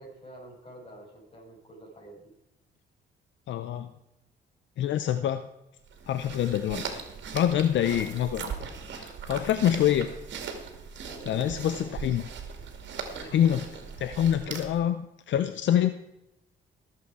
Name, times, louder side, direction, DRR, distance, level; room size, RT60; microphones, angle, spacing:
voice 1, 0.0-2.3 11.1-12.0 13.0-13.6, right 1 dB, 30° left, -1 dB, 5.8 m, -48 dB
voice 2, 3.5-3.9 4.8-5.5 6.1-7.0 7.3-8.5 8.9-10.1 11.3-12.2 13.3-13.6 14.0-15.9, left 10 dB, 70° left, 11 dB, 0.7 m, -26 dB
sound 1, 5.9-14.9, right 6 dB, 65° right, 2.3 m, -39 dB
19.5 x 7.8 x 4.7 m, 0.89 s
cardioid pair, 90°, 20 cm